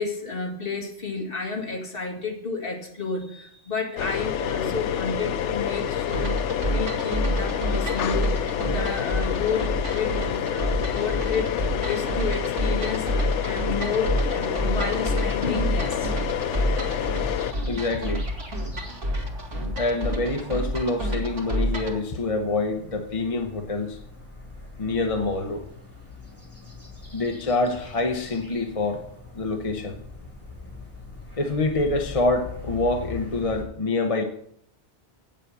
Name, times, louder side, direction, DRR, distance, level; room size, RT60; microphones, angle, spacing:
voice 1, 0.0-6.3 6.6-8.3 8.6-13.1 13.4-16.2, left 4 dB, 50° left, 2.1 m, -31 dB
sound 1, 4.0-17.5, left 9 dB, 85° left, 1.0 m, -28 dB
sound 2, 6.1-22.0, equal, 85° right, 2.2 m, -29 dB
sound 3, 15.2-33.6, left 3 dB, 10° left, 3.2 m, -43 dB
voice 2, 17.7-18.2 19.8-24.0 24.8-25.6 27.1-29.0 29.3-30.0 31.4-34.2, left 2 dB, 35° left, 0.9 m, -26 dB
9.0 x 7.5 x 6.9 m
omnidirectional pair, 1.2 m